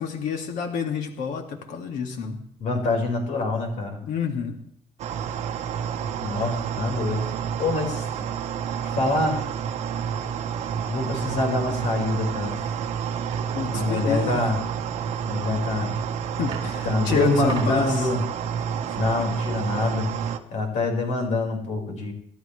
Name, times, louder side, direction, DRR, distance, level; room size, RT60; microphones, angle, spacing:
voice 1, 0.0-2.4 4.0-4.6 13.5-14.5 16.4-18.1 18.9-19.0, left 6 dB, 85° left, 4 dB, 2.2 m, -28 dB
voice 2, 2.6-4.0 6.2-7.3 7.6-8.3 8.9-9.4 10.9-12.6 13.7-14.6 15.2-16.0 16.8-18.2 18.9-20.1 20.5-22.1, left 2 dB, 70° left, 2 dB, 5.0 m, -25 dB
sound 1, 5.0-20.4, right 7 dB, 60° right, 1.2 m, -29 dB
sound 2, 12.6-12.7 13.3-13.7 15.5-15.6 16.2-16.7 17.1-17.9, right 6 dB, 40° right, 4.3 m, -36 dB
28.0 x 12.5 x 3.3 m, 0.67 s
cardioid pair, 155°, 13 cm